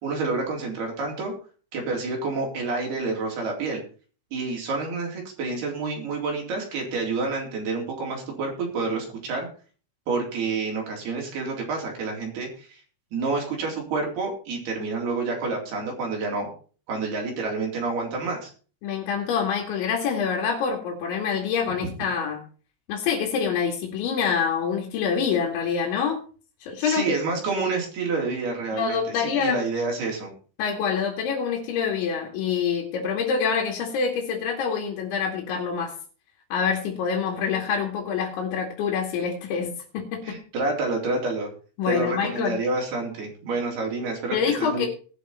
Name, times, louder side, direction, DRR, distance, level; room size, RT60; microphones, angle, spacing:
voice 1, 0.0-1.3 1.7-3.8 4.3-9.5 10.1-12.8 13.1-16.5 16.9-18.5 26.8-30.3 40.2-41.5 41.9-44.9, right 3 dB, 50° right, 0 dB, 5.4 m, -28 dB
voice 2, 18.8-22.4 22.9-26.2 26.6-27.2 28.8-29.6 30.6-35.9 36.5-40.4 41.8-42.6 44.3-44.9, left 6 dB, 65° left, -1 dB, 4.4 m, -26 dB
20.0 x 6.9 x 4.3 m, 0.39 s
omnidirectional pair, 5.9 m